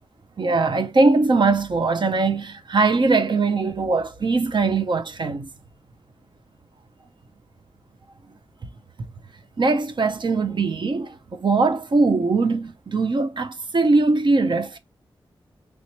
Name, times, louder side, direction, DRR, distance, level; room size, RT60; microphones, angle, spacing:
voice 1, 0.4-5.5 9.6-14.8, right 3 dB, 55° right, 0.7 m, -21 dB
3.1 x 3.0 x 2.9 m
cardioid pair, 70°, 9 cm